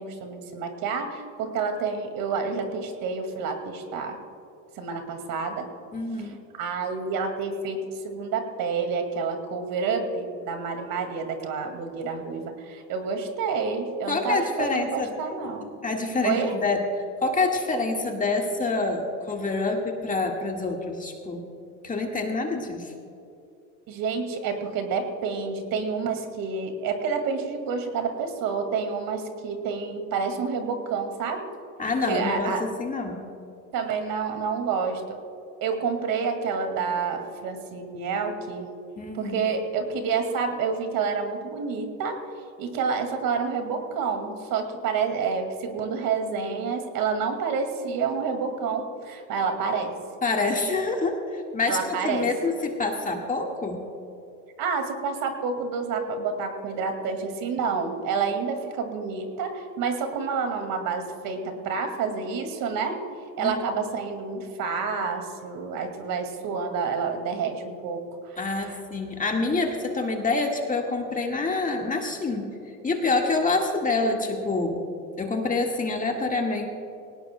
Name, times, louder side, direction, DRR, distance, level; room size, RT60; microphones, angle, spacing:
voice 1, 0.0-4.2 4.8-5.7 6.2-7.8 8.0-15.7 16.2-16.6 23.9-31.5 32.1-32.6 33.7-35.2 35.6-38.7 39.1-42.2 42.6-49.9 51.7-52.3 54.6-63.0 63.4-68.8, right 5 dB, 45° right, 6 dB, 2.1 m, -29 dB
voice 2, 5.9-6.4 14.1-15.1 15.8-16.8 17.2-21.5 21.8-22.9 31.8-33.2 39.0-39.3 50.2-53.8 63.4-63.5 68.4-72.5 72.8-74.8 75.2-76.7, left 3 dB, 15° left, 1 dB, 1.7 m, -27 dB
19.5 x 18.0 x 2.2 m, 2.6 s
supercardioid pair, 110°, 46 cm